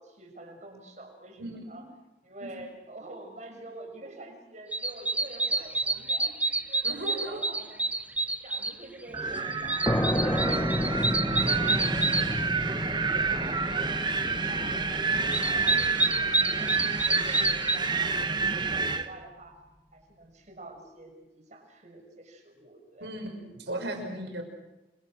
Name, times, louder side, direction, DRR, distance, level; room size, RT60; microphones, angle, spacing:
voice 1, 0.0-1.8 2.2-6.4 6.7-7.9 8.4-11.0 11.9-16.8 17.0-19.6 19.9-23.1 23.7-23.9, right 2 dB, 40° right, 3 dB, 6.3 m, -47 dB
voice 2, 1.4-1.8 2.4-2.5 6.8-7.6 23.0-24.4, right 1 dB, 75° right, 4 dB, 6.0 m, -37 dB
sound 1, 4.7-8.7 9.2-12.2 14.7-14.8 15.1-17.8, right 2 dB, 10° right, 1.0 m, -28 dB
Wind, 9.1-19.1, right 4 dB, 25° right, 1.2 m, -29 dB
sound 2, 9.9-17.2, equal, 15° left, 1.5 m, -31 dB
29.5 x 24.5 x 6.4 m, 1.0 s
head